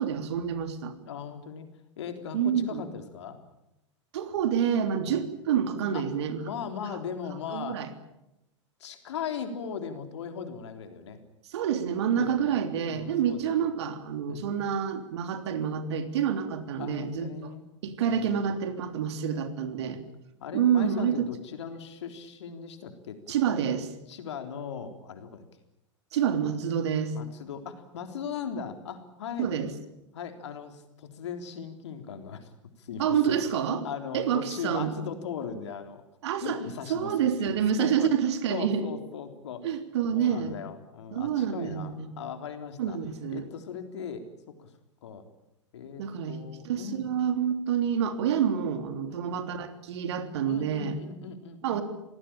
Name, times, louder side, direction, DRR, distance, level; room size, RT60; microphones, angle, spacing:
voice 1, 0.0-0.9 2.3-2.8 4.1-6.5 7.5-7.9 11.5-17.3 17.8-20.0 20.5-21.3 23.3-23.9 26.1-27.1 29.4-29.7 33.0-33.8 34.1-34.9 36.2-36.6 36.9-38.8 39.6-40.5 41.1-42.1 42.8-43.4 46.0-46.4 46.6-51.0 51.6-51.8, right 8 dB, 60° right, 8 dB, 3.3 m, -28 dB
voice 2, 1.0-1.7 2.0-3.4 5.1-5.2 5.9-6.1 6.4-7.8 8.8-11.2 12.2-12.5 12.8-13.7 14.3-14.5 16.8-17.6 18.1-18.6 19.7-19.9 20.4-23.2 24.1-25.4 27.1-29.5 30.1-33.4 33.7-36.0 36.4-37.5 37.8-38.1 38.5-39.8 40.1-43.0 43.3-44.2 44.6-44.7 45.0-45.2 45.7-47.1 49.1-49.4 50.4-51.8, left 7 dB, 65° left, 7 dB, 3.7 m, -39 dB
27.0 x 18.5 x 8.9 m, 0.89 s
figure-of-eight pair, 95°, 16 cm